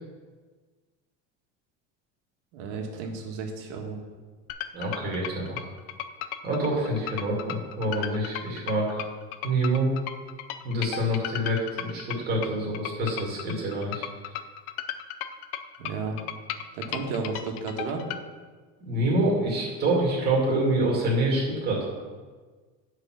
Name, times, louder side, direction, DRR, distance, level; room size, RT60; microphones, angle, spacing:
voice 1, 2.5-4.0 15.8-16.2 16.7-18.1, right 4 dB, 85° right, 1 dB, 1.8 m, -33 dB
sound 1, 4.5-18.2, left 11 dB, 70° left, 0.6 m, -36 dB
voice 2, 4.7-5.7 6.4-9.0 9.4-9.9 10.6-14.0 18.8-21.8, right 1 dB, 30° right, -3 dB, 2.3 m, -26 dB
9.1 x 4.9 x 5.9 m, 1.4 s
cardioid pair, 170°, 34 cm